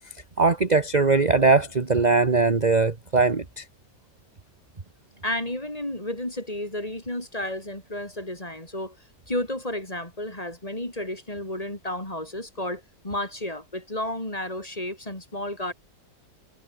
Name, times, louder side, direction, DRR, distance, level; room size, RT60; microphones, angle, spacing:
voice 1, 0.4-3.6, right 4 dB, 25° right, 1.4 m, -20 dB
voice 2, 5.2-9.0 9.3-15.7, left 1 dB, 20° left, 4.3 m, -32 dB
omnidirectional pair, 1.9 m